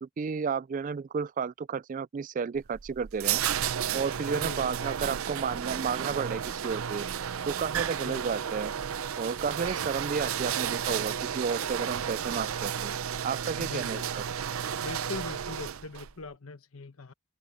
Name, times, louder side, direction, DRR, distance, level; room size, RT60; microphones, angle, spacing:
voice 1, 0.0-3.4 3.9-7.1 7.5-8.7 9.2-12.9 13.2-14.2, right 6 dB, 40° right, 0.3 m, -32 dB
sound 1, 2.6-16.1, right 8 dB, 85° right, 0.6 m, -32 dB
voice 2, 4.3-4.7 8.0-8.2 13.6-14.1 14.8-17.1, left 3 dB, 90° left, 1.0 m, -41 dB
open air
head